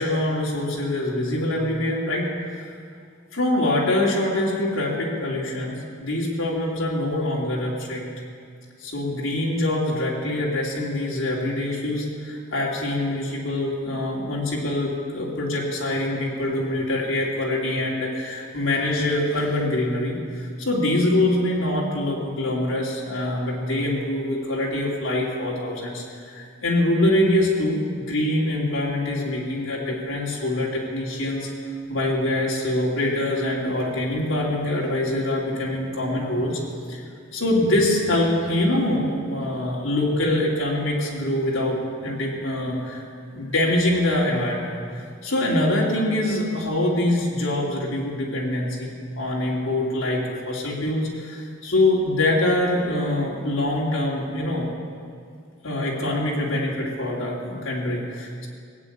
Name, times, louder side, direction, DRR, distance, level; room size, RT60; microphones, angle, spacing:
voice 1, 0.0-2.3 3.3-8.0 8.8-31.5 31.9-37.0 37.3-43.0 43.3-54.7 55.6-58.5, left 1 dB, 70° left, -4 dB, 3.0 m, -24 dB
18.5 x 8.5 x 8.7 m, 2.2 s
head